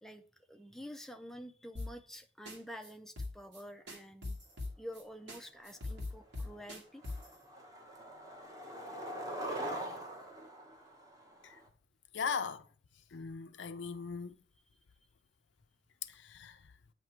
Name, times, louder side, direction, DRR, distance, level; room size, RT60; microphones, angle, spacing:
voice 1, 0.0-4.4 4.8-7.0, equal, ahead, 0.4 m, -49 dB
sound 1, 1.8-2.2 2.5-2.6 2.8-2.9 3.2-5.0 5.3-5.4 5.6-7.3, left 2 dB, 70° right, 2.1 m, -41 dB
Skateboard, 5.9-6.0 6.4-6.7 7.0-11.7, right 1 dB, 20° right, 1.0 m, -43 dB
voice 2, 12.1-12.6 13.1-14.3 16.3-16.5, left 5 dB, 70° left, 0.5 m, -38 dB
8.6 x 2.9 x 4.5 m
head